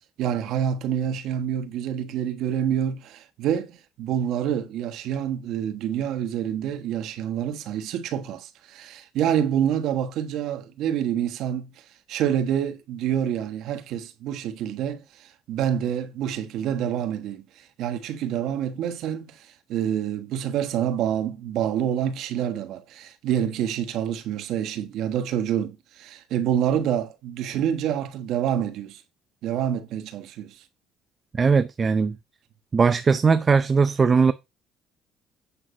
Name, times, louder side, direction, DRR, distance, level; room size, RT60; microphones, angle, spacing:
voice 1, 0.2-11.7 12.1-17.4 17.8-29.0 29.4-30.6, right 9 dB, 75° right, 1.3 m, -27 dB
voice 2, 31.3-32.2 32.7-34.3, right 5 dB, 30° right, 0.5 m, -19 dB
8.8 x 5.5 x 5.1 m
cardioid pair, 110°, 0 cm